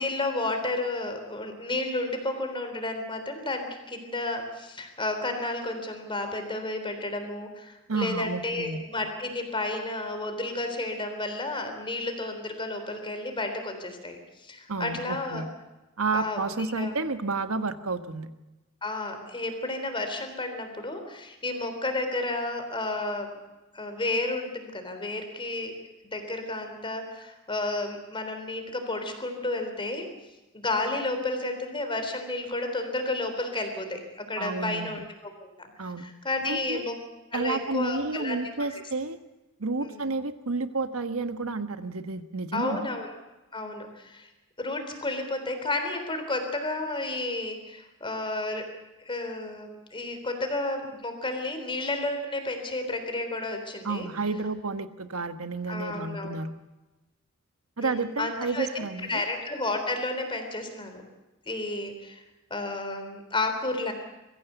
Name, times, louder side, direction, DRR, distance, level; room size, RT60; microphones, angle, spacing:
voice 1, 0.0-15.5 16.1-16.4 16.7-16.9 18.8-23.3 23.7-25.7 26.1-30.1 30.5-35.7 36.0-37.0 37.3-38.8 39.8-40.0 42.5-43.1 43.5-44.3 44.6-48.7 49.0-54.1 55.7-56.4 57.8-61.0 61.5-62.2 62.5-63.9, left 2 dB, 25° left, 6 dB, 3.6 m, -32 dB
voice 2, 7.9-8.8 14.7-15.5 16.0-18.3 34.4-34.9 35.8-36.1 36.5-36.9 37.3-39.2 39.6-42.9 53.8-56.5 57.8-59.2, right 3 dB, 70° right, 10 dB, 1.3 m, -31 dB
22.5 x 15.0 x 8.1 m, 1.1 s
head